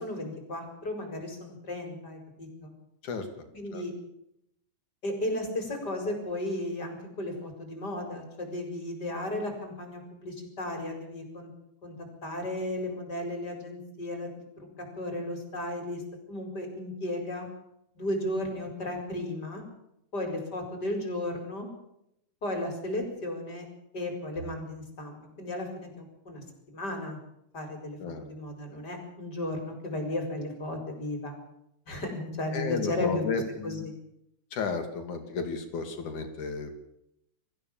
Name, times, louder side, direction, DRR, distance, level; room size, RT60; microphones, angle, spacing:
voice 1, 0.0-2.7 3.5-3.9 5.0-11.5 11.8-11.9 12.2-14.3 14.6-14.7 15.0-16.0 16.3-17.5 18.0-19.6 20.1-21.7 22.4-23.7 23.9-27.2 27.5-31.3 31.9-33.2 33.6-33.9, left 1 dB, 30° left, 4 dB, 5.5 m, -34 dB
voice 2, 32.5-33.8 34.5-36.7, left 4 dB, 85° left, 6 dB, 4.2 m, -33 dB
23.5 x 15.0 x 7.4 m, 0.79 s
omnidirectional pair, 3.4 m